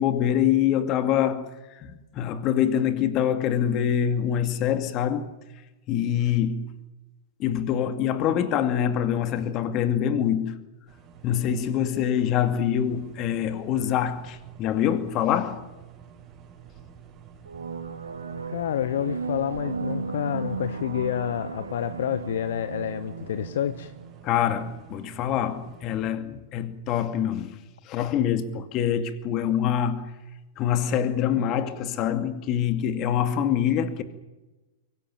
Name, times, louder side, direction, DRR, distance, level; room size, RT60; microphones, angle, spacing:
voice 1, 0.0-5.3 5.9-6.7 7.4-10.6 11.2-15.7 24.2-27.6 27.8-30.1 30.6-34.0, left 9 dB, 40° left, 2.3 m, -25 dB
sound 1, 10.9-26.1, right 8 dB, 30° right, 6.0 m, -49 dB
sound 2, 17.4-24.8, right 4 dB, 85° right, 2.4 m, -35 dB
voice 2, 18.5-23.9, left 11 dB, 65° left, 0.9 m, -29 dB
24.0 x 16.5 x 9.1 m
hypercardioid pair, 105°, 0 cm